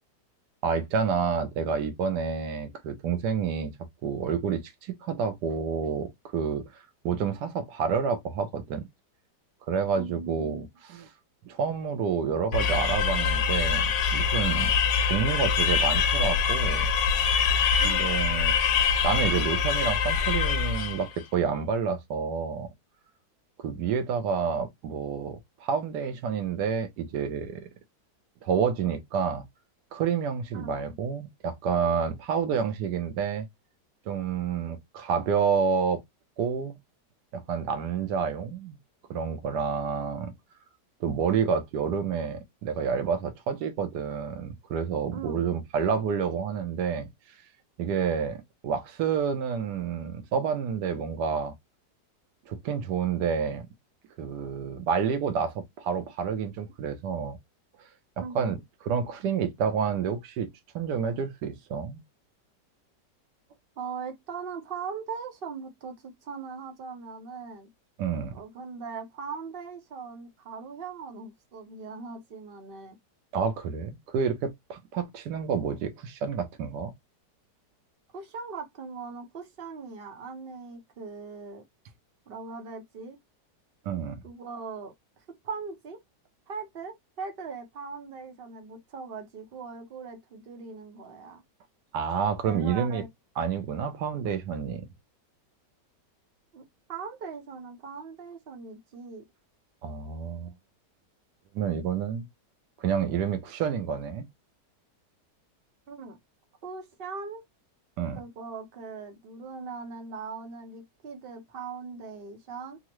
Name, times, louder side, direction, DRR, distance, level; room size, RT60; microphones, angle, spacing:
voice 1, 0.6-3.7 4.0-8.9 9.7-11.1 11.4-14.7 15.0-16.9 17.8-22.7 23.6-27.7 28.4-29.4 29.9-33.5 34.1-36.0 36.4-36.7 37.3-38.8 39.1-40.3 41.0-47.1 47.8-51.5 52.5-53.6 54.2-57.4 58.2-58.6 58.8-60.5 60.7-62.0 68.0-68.3 73.3-76.9 83.9-84.2 91.9-93.0 93.4-94.9 99.8-100.5 101.5-102.3 102.8-104.2 108.0-108.2, right 6 dB, 75° right, 1.2 m, -29 dB
voice 2, 10.0-10.7 17.8-18.1 30.5-30.8 45.1-45.5 58.2-58.6 63.8-67.7 68.3-73.0 78.1-81.6 82.3-83.2 84.2-84.9 85.4-86.0 86.5-91.4 92.4-93.1 96.5-96.6 96.9-99.2 105.9-106.2 106.6-107.4 108.1-112.8, right 5 dB, 50° right, 0.7 m, -40 dB
sound 1, 12.5-21.1, left 6 dB, 90° left, 1.3 m, -24 dB
3.7 x 2.0 x 2.9 m
omnidirectional pair, 1.9 m